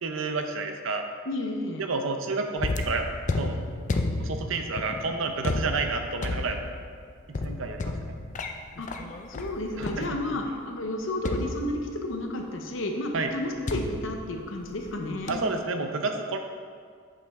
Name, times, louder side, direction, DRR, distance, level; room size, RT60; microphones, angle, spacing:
voice 1, 0.0-1.1 1.8-3.6 4.2-6.6 7.4-8.2 9.8-10.1 13.1-13.3 15.3-16.4, right 3 dB, 70° right, 5 dB, 0.6 m, -30 dB
voice 2, 1.3-1.8 8.8-8.9 9.3-15.4, left 1 dB, 65° left, 2 dB, 0.8 m, -32 dB
sound 1, 2.6-10.5 11.2-12.2 13.7-14.9 15.3-15.6, left 2 dB, 35° left, 0.4 m, -32 dB
8.1 x 5.4 x 3.6 m, 2.1 s
head